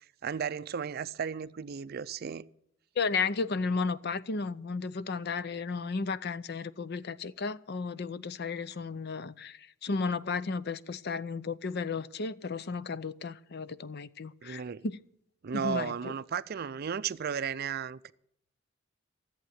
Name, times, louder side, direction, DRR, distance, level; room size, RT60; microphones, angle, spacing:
voice 1, 0.2-2.5 14.4-14.8 15.4-18.1, right 6 dB, 50° right, 0.4 m, -34 dB
voice 2, 3.0-15.0 15.5-16.1, left 4 dB, 55° left, 0.6 m, -34 dB
14.5 x 7.9 x 9.6 m
head